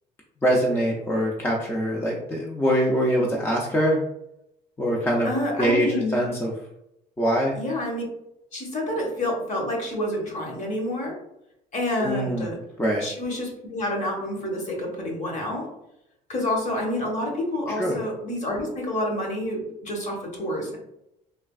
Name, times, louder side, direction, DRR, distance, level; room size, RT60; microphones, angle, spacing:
voice 1, 0.4-4.0 4.8-5.3 5.6-5.9 6.1-6.5 7.2-7.5 12.0-12.5 12.8-13.0 17.8-17.9, equal, 15° left, -1 dB, 0.4 m, -23 dB
voice 2, 5.2-6.1 7.5-8.0 8.5-11.1 11.7-12.6 13.0-15.7 16.3-20.8, left 1 dB, 45° left, -1 dB, 1.1 m, -28 dB
3.2 x 2.3 x 2.3 m, 0.81 s
cardioid pair, 110°, 17 cm